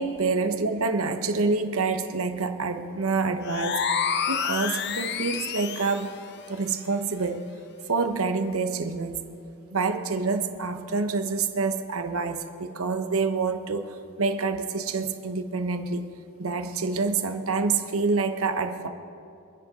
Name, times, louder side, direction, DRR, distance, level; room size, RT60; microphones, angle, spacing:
voice 1, 0.0-3.9 4.3-6.1 6.5-7.5 7.9-9.2 9.7-16.1 16.4-18.9, right 4 dB, 85° right, 8 dB, 1.0 m, -27 dB
sound 1, 3.4-6.1, left 6 dB, 50° left, 0.6 m, -28 dB
26.0 x 10.5 x 3.8 m, 2.6 s
head